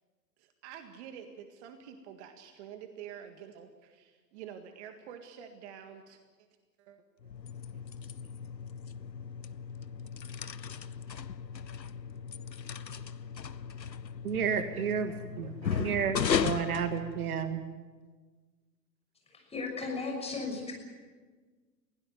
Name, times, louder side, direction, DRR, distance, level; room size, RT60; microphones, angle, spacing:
voice 1, 0.4-6.2 6.8-7.0 7.7-7.8 8.2-8.3 12.7-13.0 14.3-15.9 16.2-16.3, right 8 dB, 40° right, 7 dB, 1.9 m, -49 dB
sound 1, 7.2-17.7, left 7 dB, 90° left, 0.7 m, -36 dB
voice 2, 14.2-15.5 15.8-17.6, right 7 dB, 60° right, 9 dB, 1.8 m, -31 dB
voice 3, 19.3-20.7, left 4 dB, 10° left, 1 dB, 6.2 m, -36 dB
22.0 x 17.0 x 9.4 m, 1.4 s
figure-of-eight pair, 105°, 49 cm